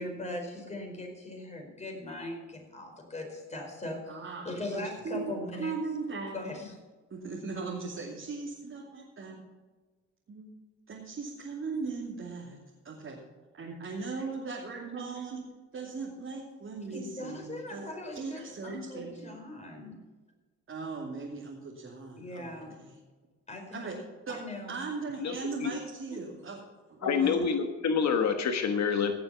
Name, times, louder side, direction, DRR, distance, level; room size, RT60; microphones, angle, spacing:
voice 1, 0.0-4.1 4.4-5.7 6.3-6.7 16.9-19.9 22.2-22.8 23.5-23.9 24.3-24.8, left 1 dB, 20° left, 1 dB, 4.8 m, -40 dB
voice 2, 4.1-6.4 7.1-9.4 10.3-10.5 10.9-12.6 12.8-13.2 13.6-15.4 15.7-17.9 18.1-19.4 20.7-22.9 23.7-24.0 24.3-24.4 24.7-26.6 26.9-27.4, right 4 dB, 45° right, -3 dB, 2.7 m, -38 dB
voice 3, 27.0-29.1, left 6 dB, 65° left, 6 dB, 1.3 m, -27 dB
17.5 x 6.9 x 5.8 m, 1.3 s
cardioid pair, 90°, 30 cm